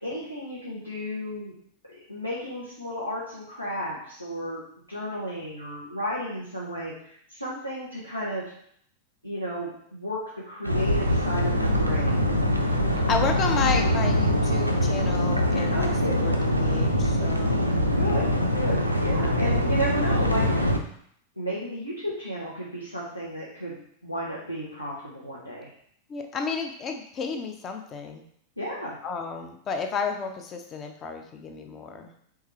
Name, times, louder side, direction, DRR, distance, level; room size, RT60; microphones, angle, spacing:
voice 1, 0.0-1.5 2.1-4.6 4.9-8.4 9.2-10.2 10.5-12.3 15.7-16.4 18.0-20.4 21.4-25.7 28.6-28.9, equal, 90° left, -7 dB, 1.0 m, -33 dB
sound 1, 10.6-20.8, equal, 90° right, 0.5 m, -23 dB
voice 2, 12.9-16.3 16.6-17.6 26.1-28.2 29.0-32.1, left 5 dB, 30° left, 5 dB, 0.6 m, -32 dB
4.6 x 3.6 x 3.2 m, 0.67 s
figure-of-eight pair, 90°, 0 cm